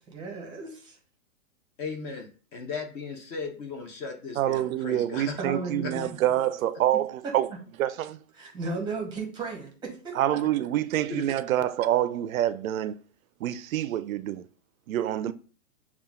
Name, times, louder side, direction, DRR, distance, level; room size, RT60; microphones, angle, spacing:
voice 1, 0.1-1.0 5.4-6.1 6.9-7.6 8.4-10.4, right 3 dB, 10° right, 0.8 m, -35 dB
voice 2, 1.8-5.4 11.1-11.2, left 4 dB, 25° left, 0.6 m, -36 dB
voice 3, 4.4-7.5 7.8-8.2 10.1-13.0 13.4-14.5 14.9-15.3, right 12 dB, 80° right, 0.5 m, -26 dB
6.8 x 2.4 x 2.3 m
hypercardioid pair, 145°, 41 cm